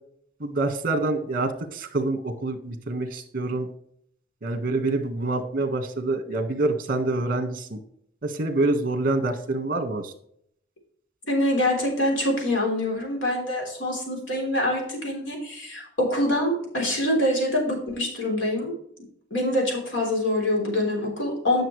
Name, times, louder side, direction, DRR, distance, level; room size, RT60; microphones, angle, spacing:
voice 1, 0.4-3.7 4.4-7.8 8.2-10.1, right 2 dB, 50° right, 8 dB, 1.4 m, -26 dB
voice 2, 11.3-18.7 19.3-21.6, left 1 dB, 70° left, 0 dB, 3.5 m, -25 dB
10.5 x 6.8 x 3.2 m, 0.67 s
head